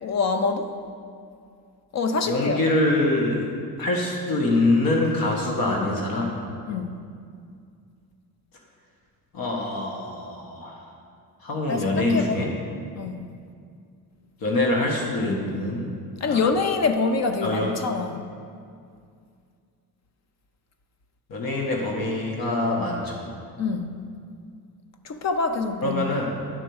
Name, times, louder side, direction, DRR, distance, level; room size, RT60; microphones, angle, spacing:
voice 1, 0.0-0.7 1.9-2.6 6.7-7.0 11.7-12.4 13.0-13.3 16.2-18.2 23.6-24.0 25.0-26.2, left 4 dB, 45° left, 7 dB, 0.6 m, -25 dB
voice 2, 2.3-3.5 3.8-6.4 9.3-10.8 11.4-12.5 14.4-16.0 16.2-16.4 17.4-17.7 21.3-23.3 25.8-26.3, left 2 dB, 70° left, -1 dB, 1.5 m, -24 dB
9.7 x 4.5 x 7.0 m, 2.3 s
cardioid pair, 115°, 37 cm